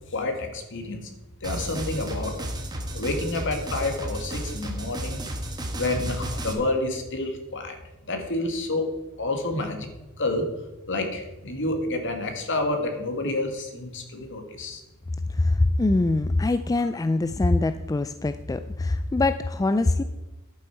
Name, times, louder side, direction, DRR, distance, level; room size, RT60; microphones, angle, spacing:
voice 1, 0.1-1.1 1.4-2.3 2.9-5.2 5.8-7.8 8.1-8.8 9.2-9.9 10.2-10.5 10.9-14.8, left 2 dB, 55° left, 4 dB, 1.9 m, -29 dB
sound 1, 1.4-6.5, right 1 dB, 20° right, 1.5 m, -32 dB
voice 2, 15.3-20.0, left 2 dB, 15° left, 11 dB, 0.3 m, -23 dB
11.0 x 9.0 x 4.6 m, 1.1 s
head